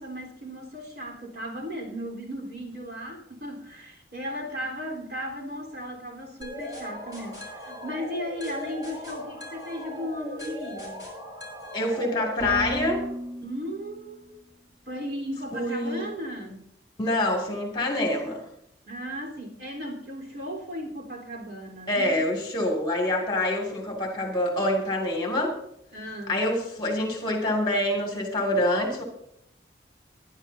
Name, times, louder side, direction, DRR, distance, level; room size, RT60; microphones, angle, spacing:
voice 1, 0.0-11.0 13.4-14.4 14.9-16.6 18.8-22.2 25.9-26.4, equal, 65° right, -1 dB, 4.0 m, -36 dB
sound 1, 6.4-14.2, equal, 20° right, 6.0 m, -37 dB
voice 2, 11.7-13.0 15.5-16.1 17.0-18.4 21.9-25.6 26.3-29.0, left 1 dB, 25° left, 1 dB, 2.5 m, -26 dB
20.0 x 11.0 x 2.8 m, 0.74 s
head